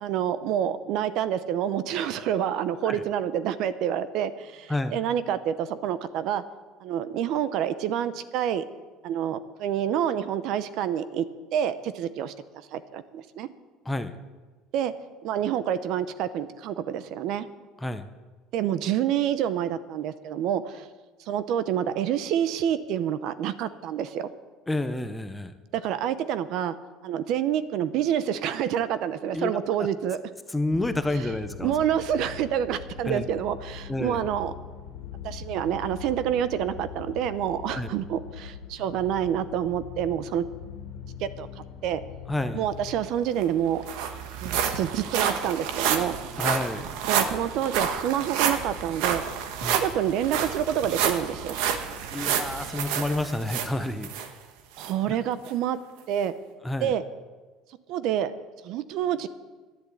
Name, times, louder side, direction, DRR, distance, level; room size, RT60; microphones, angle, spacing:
voice 1, 0.0-6.4 6.8-8.6 9.0-11.3 11.5-12.3 12.7-13.5 14.7-14.9 15.2-17.5 18.5-20.9 21.3-24.3 25.7-26.8 27.0-30.2 31.6-34.5 35.2-40.5 41.2-41.5 41.8-42.0 42.5-43.8 44.4-46.1 47.1-49.2 49.7-51.6 54.8-55.8 56.1-56.3 56.8-57.0 57.9-58.3 58.6-59.3, right 10 dB, 50° right, 14 dB, 0.7 m, -27 dB
voice 2, 4.7-5.0 13.9-14.1 17.8-18.0 24.7-25.5 29.3-29.5 30.5-31.7 33.0-33.2 33.9-34.2 37.7-37.9 42.3-42.6 46.4-46.9 49.6-49.8 52.1-54.1 55.1-55.2 56.6-56.9, left 2 dB, 5° left, 9 dB, 0.6 m, -29 dB
sound 1, 30.7-43.0, left 7 dB, 80° left, 1.9 m, -41 dB
sound 2, 43.1-43.2 43.4-54.3 54.8-54.9 55.5-55.6, right 8 dB, 70° right, 1.3 m, -29 dB
11.0 x 10.5 x 8.5 m, 1.3 s
cardioid pair, 175°, 0 cm